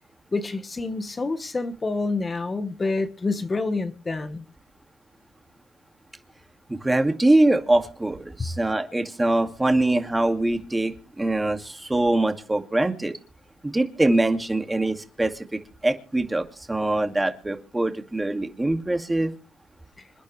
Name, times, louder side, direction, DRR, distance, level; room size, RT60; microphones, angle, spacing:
voice 1, 0.3-4.4 8.4-8.5, left 3 dB, 30° left, 1.4 m, -27 dB
voice 2, 6.7-13.1 13.6-19.3, right 2 dB, 15° right, 2.2 m, -23 dB
27.0 x 10.5 x 3.3 m
cardioid pair, 90°, 0 cm